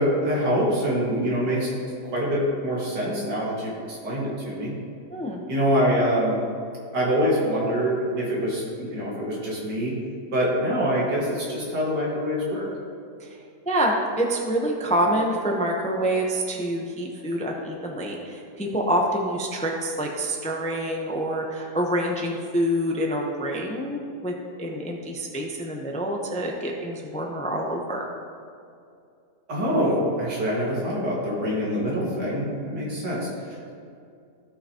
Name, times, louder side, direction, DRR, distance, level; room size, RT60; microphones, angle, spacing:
voice 1, 0.0-1.7 2.1-4.7 5.5-6.4 6.9-10.0 10.3-12.7 29.5-33.3, equal, 85° right, -5 dB, 2.5 m, -25 dB
voice 2, 5.1-5.4 13.2-13.4 13.7-24.3 24.6-28.1, right 1 dB, 10° left, 0 dB, 0.5 m, -26 dB
16.0 x 5.7 x 2.9 m, 2.4 s
omnidirectional pair, 1.7 m